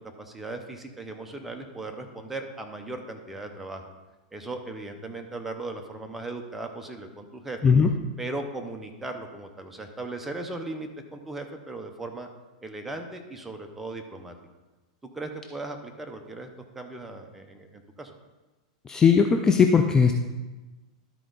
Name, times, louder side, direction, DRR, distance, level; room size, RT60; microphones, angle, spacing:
voice 1, 0.2-3.9 4.3-7.6 8.2-12.3 12.6-14.3 15.1-16.5 16.7-18.1, right 2 dB, 5° right, 4 dB, 0.7 m, -37 dB
voice 2, 7.6-7.9 18.9-20.1, left 6 dB, 15° left, 4 dB, 0.4 m, -19 dB
12.5 x 4.5 x 3.9 m, 1.2 s
supercardioid pair, 145°, 4 cm